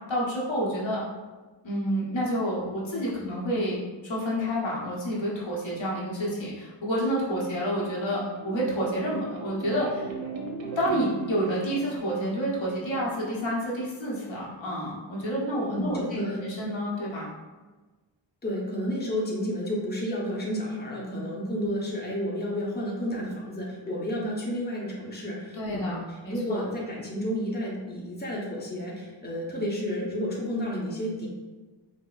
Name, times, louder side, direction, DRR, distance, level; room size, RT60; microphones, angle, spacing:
voice 1, 0.1-1.0 1.6-10.1 10.8-17.2 25.5-26.6, equal, 75° left, -5 dB, 0.9 m, -29 dB
sound 1, 7.6-13.0, right 5 dB, 80° right, 0.6 m, -38 dB
voice 2, 15.7-16.4 18.4-31.3, equal, 20° left, -4 dB, 0.8 m, -31 dB
4.8 x 2.1 x 2.3 m, 1.3 s
wide cardioid pair, 40°, 46 cm